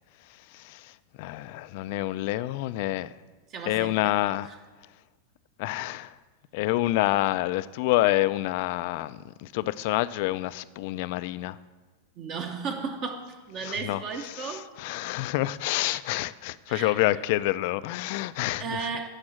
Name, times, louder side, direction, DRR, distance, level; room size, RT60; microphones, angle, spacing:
voice 1, 0.5-0.9 1.2-3.1 3.7-4.5 5.6-6.1 6.5-11.6 13.6-14.0 14.3-18.9, left 16 dB, 55° left, 16 dB, 0.3 m, -28 dB
voice 2, 3.5-4.1 4.5-4.6 12.2-14.7 16.7-17.0 18.6-19.1, right 5 dB, 40° right, 4 dB, 0.8 m, -34 dB
8.6 x 4.8 x 7.6 m, 1.3 s
supercardioid pair, 140°, 0 cm